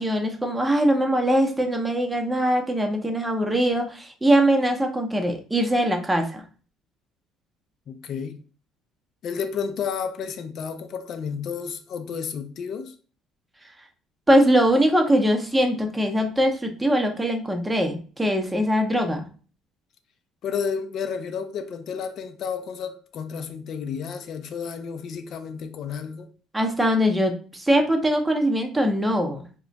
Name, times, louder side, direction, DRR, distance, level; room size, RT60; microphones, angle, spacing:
voice 1, 0.0-6.4 14.3-19.3 26.5-29.5, equal, 10° right, 0.7 m, -22 dB
voice 2, 7.9-8.4 9.2-12.9 20.4-26.3, left 6 dB, 55° left, 0.5 m, -31 dB
2.4 x 2.1 x 3.9 m
cardioid pair, 100°, 0 cm